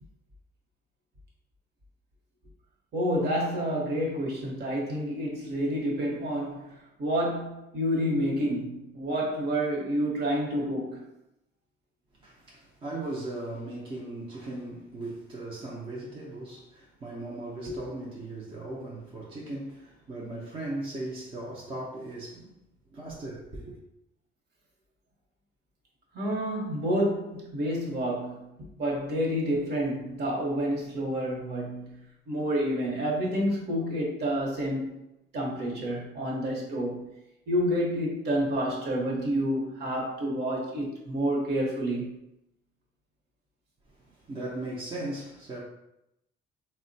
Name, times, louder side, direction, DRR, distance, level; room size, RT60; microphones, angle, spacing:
voice 1, 2.9-11.0 17.7-17.9 26.1-28.5 28.8-32.0 32.3-35.0 35.3-37.2 37.5-42.1, equal, 55° right, 1.0 m, -29 dB
voice 2, 12.2-22.6 22.9-23.7 44.3-45.6, right 2 dB, 25° right, 0.5 m, -38 dB
3.6 x 2.1 x 2.6 m
cardioid pair, 115°, 21 cm